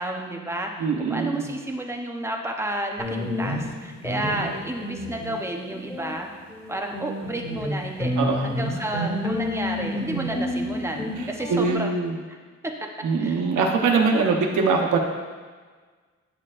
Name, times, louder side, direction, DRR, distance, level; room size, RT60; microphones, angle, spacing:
voice 1, 0.0-6.3 6.7-8.1 8.4-12.0 12.3-12.4 12.6-12.7 13.2-13.7 14.1-14.3, right 1 dB, 10° right, 1 dB, 0.7 m, -31 dB
voice 2, 0.8-1.5 8.2-8.5 11.2-12.2 13.0-15.0, right 4 dB, 90° right, 1 dB, 1.0 m, -23 dB
sound 1, 3.0-6.2 6.5-11.7, left 1 dB, 10° left, 2.0 m, -30 dB
9.7 x 6.5 x 2.5 m, 1.5 s
wide cardioid pair, 130°, 30 cm